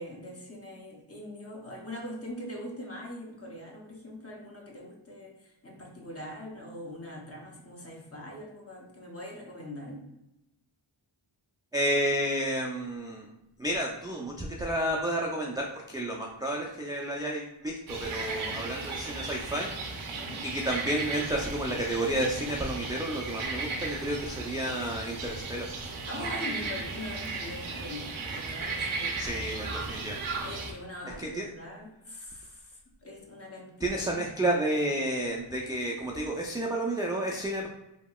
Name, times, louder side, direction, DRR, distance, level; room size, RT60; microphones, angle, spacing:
voice 1, 0.0-10.0 18.3-18.7 20.1-20.5 26.0-29.9 30.4-34.3, left 1 dB, 30° left, -1 dB, 0.8 m, -42 dB
voice 2, 11.7-13.3 13.6-20.0 20.4-25.7 29.2-30.2 31.3-31.5 33.8-37.7, right 1 dB, 10° right, -2 dB, 0.3 m, -31 dB
sound 1, 17.9-30.7, right 3 dB, 75° right, 0.6 m, -36 dB
2.8 x 2.8 x 2.2 m, 0.89 s
cardioid pair, 40°, 49 cm